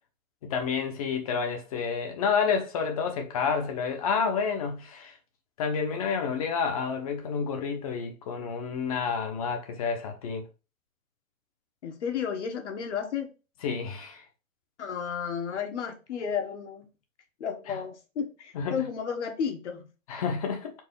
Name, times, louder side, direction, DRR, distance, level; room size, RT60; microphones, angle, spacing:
voice 1, 0.4-5.2 5.6-10.4 13.6-14.2 17.7-17.8 18.5-18.8 20.1-20.7, left 6 dB, 25° left, 1.0 m, -29 dB
voice 2, 11.8-13.3 14.8-16.9 17.4-19.9, left 7 dB, 60° left, 1.5 m, -32 dB
4.7 x 3.9 x 5.5 m
hypercardioid pair, 170°, 40 cm